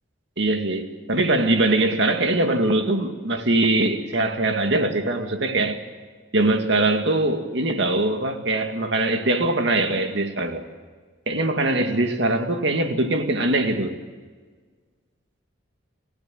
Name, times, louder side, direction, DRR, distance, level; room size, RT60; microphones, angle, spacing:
voice 1, 0.4-5.8 6.3-10.6 11.3-14.0, right 2 dB, 60° right, 2.2 m, -22 dB
30.0 x 15.5 x 7.8 m
head